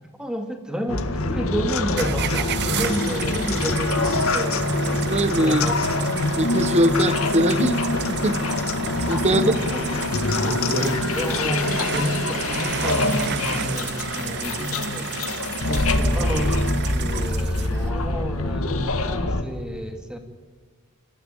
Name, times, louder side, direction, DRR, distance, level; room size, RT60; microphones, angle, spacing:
voice 1, 0.2-5.9 9.3-9.9 10.8-15.2 15.6-20.2, equal, 5° right, 5 dB, 2.2 m, -30 dB
sound 1, 0.9-19.4, left 2 dB, 70° left, 1.8 m, -25 dB
sound 2, 1.5-10.3 10.6-10.8, left 2 dB, 20° left, 5.2 m, -46 dB
sound 3, 2.0-17.9, right 8 dB, 50° right, 0.6 m, -32 dB
voice 2, 5.1-5.6 6.4-7.8 8.1-8.4 9.1-9.6 10.4-11.0, right 1 dB, 30° right, 13 dB, 1.0 m, -22 dB
26.0 x 14.0 x 9.0 m, 1.5 s
head